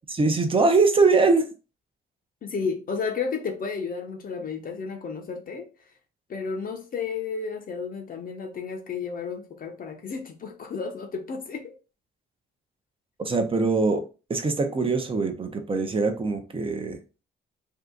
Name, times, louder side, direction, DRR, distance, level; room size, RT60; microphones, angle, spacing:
voice 1, 0.2-1.5 13.2-14.0 14.3-17.0, right 3 dB, 25° right, 0.7 m, -22 dB
voice 2, 2.4-5.7 6.3-11.7, left 5 dB, 45° left, 0.7 m, -32 dB
2.7 x 2.4 x 3.5 m
cardioid pair, 90°, 20 cm